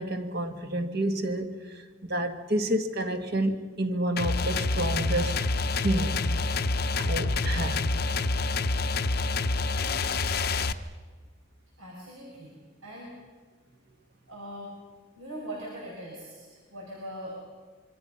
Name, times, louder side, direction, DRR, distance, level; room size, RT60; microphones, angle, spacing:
voice 1, 0.0-5.4 5.7-6.3 7.0-7.8, right 1 dB, 50° right, 6 dB, 1.7 m, -29 dB
sound 1, 4.2-10.7, left 3 dB, 50° left, 0.8 m, -27 dB
voice 2, 11.8-13.1 14.3-14.7 15.2-17.4, right 1 dB, 85° right, -3 dB, 5.8 m, -41 dB
26.5 x 24.0 x 5.7 m, 1.5 s
head